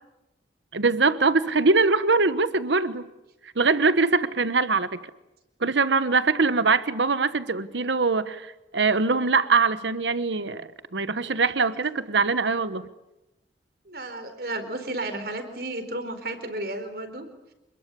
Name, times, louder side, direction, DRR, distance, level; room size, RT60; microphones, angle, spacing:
voice 1, 0.7-3.1 3.6-4.9 5.6-12.9, right 4 dB, 85° right, 1.2 m, -22 dB
voice 2, 13.9-17.2, right 2 dB, 55° right, 4.3 m, -33 dB
28.0 x 21.5 x 8.4 m
head